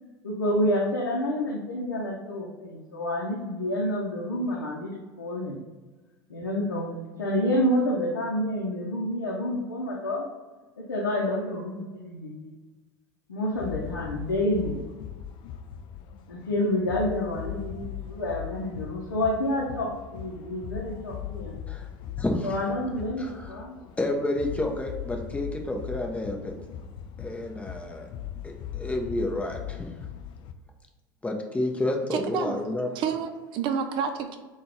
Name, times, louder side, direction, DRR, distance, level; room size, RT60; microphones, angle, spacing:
voice 1, 0.2-5.6 6.3-10.2 10.8-12.5 13.3-14.8 16.3-21.6 22.4-23.8, left 1 dB, 90° left, -4 dB, 0.6 m, -28 dB
sound 1, 13.5-30.5, left 10 dB, 45° left, 0.4 m, -39 dB
voice 2, 22.2-22.5 23.2-23.6 24.0-26.5 27.2-28.1 28.4-29.9 31.2-32.9, left 1 dB, 10° left, 2 dB, 0.7 m, -30 dB
voice 3, 32.1-32.6 32.9-34.4, right 6 dB, 50° right, 6 dB, 0.6 m, -29 dB
3.8 x 2.3 x 4.4 m, 1.3 s
hypercardioid pair, 80°, 11 cm